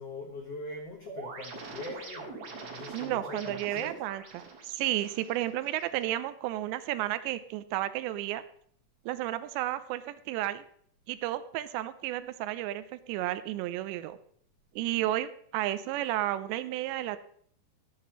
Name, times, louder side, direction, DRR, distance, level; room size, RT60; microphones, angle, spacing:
voice 1, 0.0-3.9, left 2 dB, 75° left, 0 dB, 1.4 m, -42 dB
sound 1, 1.1-6.0, right 4 dB, 60° right, 3.7 m, -44 dB
voice 2, 2.9-8.4 9.1-10.6 11.1-14.2 14.8-17.2, right 14 dB, 85° right, 13 dB, 2.8 m, -32 dB
13.5 x 9.4 x 3.0 m, 0.62 s
omnidirectional pair, 5.0 m